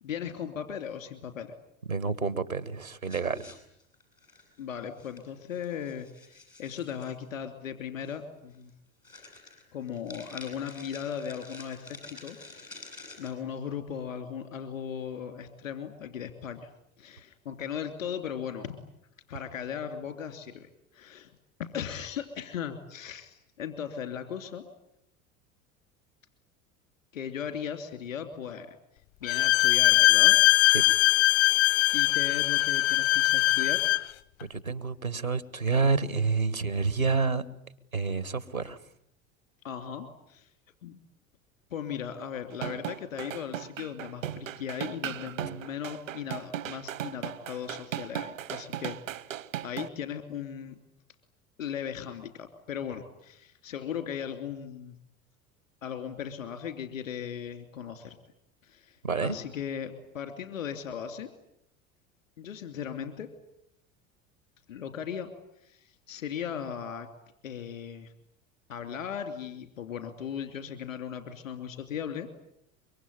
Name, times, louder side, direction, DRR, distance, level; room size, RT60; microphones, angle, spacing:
voice 1, 0.0-1.5 4.6-6.3 6.6-8.7 9.7-12.4 13.2-16.7 17.0-18.8 19.3-21.3 21.6-24.6 27.1-28.8 29.2-30.4 31.9-33.8 39.6-40.5 40.8-41.0 41.7-49.0 49.6-50.8 51.6-54.9 55.8-58.2 58.6-61.3 62.4-63.3 64.7-65.3 65.7-65.8 66.1-67.1 67.4-68.1 68.7-72.3, left 8 dB, 75° left, 8 dB, 3.0 m, -37 dB
voice 2, 1.9-3.6 30.7-30.9 34.5-37.4 37.9-38.8 59.0-59.4, right 4 dB, 90° right, 16 dB, 1.4 m, -28 dB
sound 1, 3.0-4.6 5.0-5.2 5.5-7.1 8.0-8.2 8.5-8.7 9.0-13.3, left 3 dB, 90° left, 7.5 m, -48 dB
Bowed string instrument, 29.3-34.1, left 18 dB, 55° left, 1.1 m, -21 dB
sound 2, 42.5-49.9, right 11 dB, 70° right, 1.0 m, -37 dB
25.0 x 23.5 x 10.0 m, 0.76 s
figure-of-eight pair, 70°, 40 cm